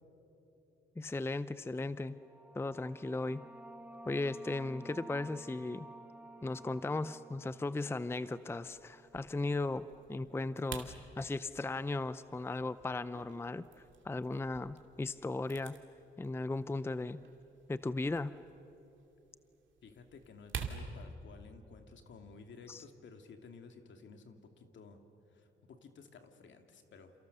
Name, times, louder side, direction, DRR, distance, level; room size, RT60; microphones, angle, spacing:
voice 1, 1.0-2.2 2.5-3.4 4.1-5.9 6.4-13.7 14.0-15.8 16.2-17.2 17.7-18.3 22.7-22.8, left 2 dB, 10° left, 15 dB, 0.5 m, -36 dB
sound 1, 2.1-9.3, right 2 dB, 5° right, 1.0 m, -53 dB
sound 2, 8.2-20.8, right 7 dB, 65° right, 2.7 m, -50 dB
voice 2, 19.8-25.0 25.3-27.1, left 4 dB, 65° left, 6 dB, 2.5 m, -54 dB
28.5 x 28.5 x 6.8 m, 3.0 s
cardioid pair, 90°, 21 cm